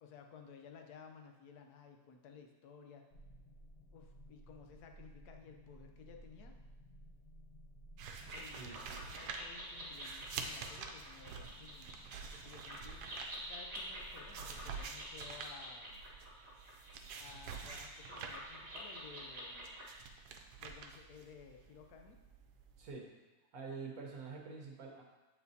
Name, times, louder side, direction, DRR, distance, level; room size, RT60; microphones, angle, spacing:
voice 1, 0.0-3.0 3.9-6.5 8.3-11.9 12.3-13.0 13.5-16.0 17.2-19.7 20.6-22.2, left 6 dB, 80° left, 4 dB, 1.2 m, -56 dB
sound 1, 3.1-16.4, right 1 dB, 60° left, 0.7 m, -59 dB
sound 2, 8.0-22.9, right 5 dB, 85° right, 1.1 m, -48 dB
sound 3, 8.2-20.0, right 1 dB, 45° right, 1.7 m, -49 dB
voice 2, 8.6-9.0 22.8-23.1 23.5-25.0, right 4 dB, 65° right, 0 dB, 1.4 m, -47 dB
7.9 x 4.5 x 2.7 m, 1.1 s
omnidirectional pair, 1.7 m